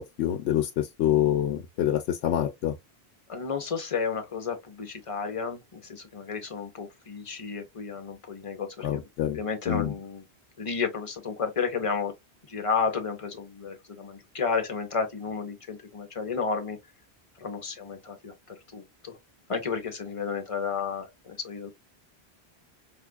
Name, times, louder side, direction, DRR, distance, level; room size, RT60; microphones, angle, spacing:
voice 1, 0.0-2.7 8.8-9.4 9.7-9.9, left 11 dB, 90° left, 0.9 m, -26 dB
voice 2, 3.3-10.2 10.6-12.1 12.5-16.8 17.4-19.2 19.5-21.7, left 5 dB, 35° left, 0.8 m, -32 dB
5.2 x 2.4 x 2.2 m
omnidirectional pair, 1.1 m